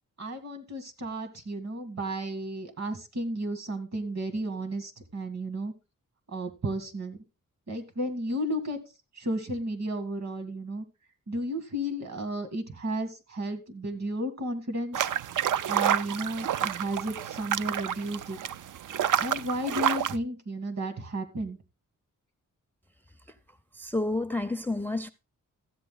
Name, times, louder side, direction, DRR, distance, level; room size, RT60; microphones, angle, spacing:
voice 1, 0.2-5.7 6.3-7.2 7.7-8.8 9.2-10.8 11.3-15.1 15.7-18.4 19.2-21.6, right 1 dB, 55° right, 2.1 m, -33 dB
sound 1, 14.9-20.2, right 9 dB, 70° right, 0.5 m, -29 dB
voice 2, 23.7-25.1, left 2 dB, 5° left, 0.4 m, -30 dB
13.5 x 8.4 x 3.9 m
wide cardioid pair, 135°, 32 cm